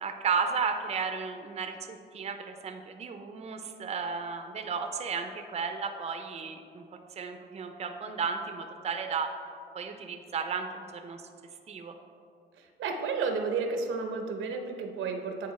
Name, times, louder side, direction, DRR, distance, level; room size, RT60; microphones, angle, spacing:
voice 1, 0.0-6.8 7.2-9.3 9.7-11.2 11.7-11.9, right 5 dB, 35° right, 6 dB, 0.5 m, -34 dB
voice 2, 12.6-15.5, right 4 dB, 75° right, 5 dB, 0.7 m, -32 dB
9.4 x 4.0 x 3.1 m, 2.4 s
cardioid pair, 90°, 20 cm